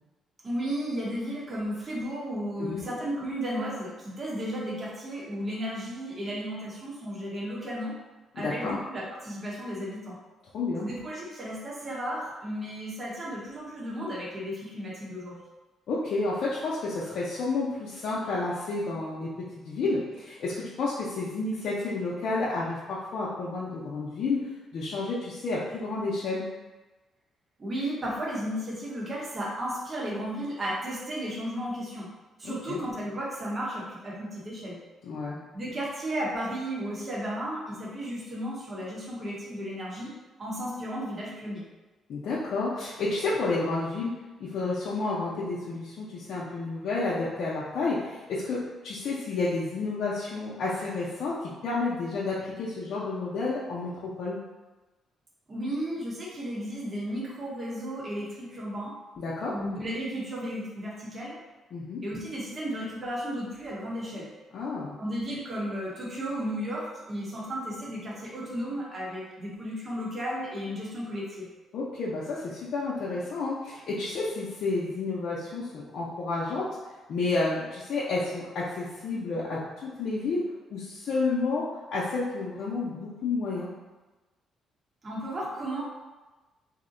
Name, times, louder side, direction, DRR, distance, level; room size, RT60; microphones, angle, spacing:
voice 1, 0.4-8.0 8.3-10.2 10.8-15.4 27.6-32.1 32.4-34.8 35.5-41.6 55.5-59.0 59.5-61.4 62.0-64.3 65.0-71.5 85.0-85.8, equal, 35° right, -5 dB, 0.9 m, -34 dB
voice 2, 8.4-8.8 10.5-10.9 15.9-26.5 32.4-32.8 35.0-35.4 42.1-54.4 59.2-59.5 61.7-62.0 64.5-65.0 71.7-76.7 77.1-80.4 80.7-81.6 81.9-83.7, left 3 dB, 70° left, -7 dB, 0.5 m, -30 dB
2.8 x 2.1 x 3.7 m, 1.2 s
cardioid pair, 90°, 0 cm